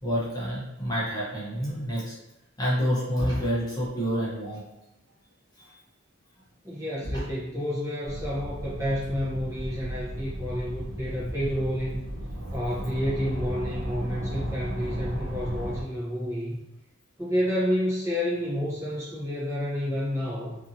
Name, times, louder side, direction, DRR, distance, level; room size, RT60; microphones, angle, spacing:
voice 1, 0.0-2.1 2.6-4.6 5.6-5.8 7.0-7.2, equal, 20° left, -8 dB, 0.7 m, -28 dB
voice 2, 6.6-12.0 12.5-16.6 17.2-20.6, equal, 15° right, -8 dB, 0.7 m, -30 dB
sound 1, 8.0-15.8, right 1 dB, 65° right, 0.5 m, -35 dB
2.6 x 2.6 x 2.6 m, 0.90 s
head